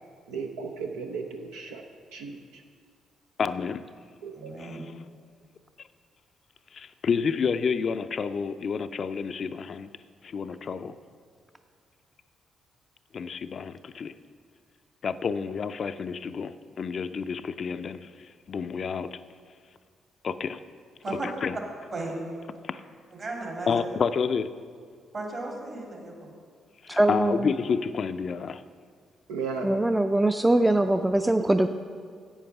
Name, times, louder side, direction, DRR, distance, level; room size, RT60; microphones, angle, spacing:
voice 1, 0.3-1.8 2.1-2.6 4.2-4.5 29.3-29.7, right 5 dB, 85° right, 3 dB, 0.5 m, -35 dB
voice 2, 3.4-3.8 4.6-4.9 6.7-9.9 10.2-11.0 13.1-14.1 15.0-19.2 20.2-20.6 21.1-21.6 22.6-22.8 23.7-24.5 26.8-28.6, left 6 dB, 55° left, 11 dB, 0.4 m, -30 dB
voice 3, 4.3-4.8 21.0-21.3 21.5-21.6 21.9-22.2 23.1-23.8 25.1-26.3, right 2 dB, 50° right, 0 dB, 2.9 m, -35 dB
voice 4, 26.9-27.5 29.6-31.7, right 1 dB, 10° right, 7 dB, 0.4 m, -22 dB
8.5 x 8.0 x 5.8 m, 2.1 s
hypercardioid pair, 45°, 0 cm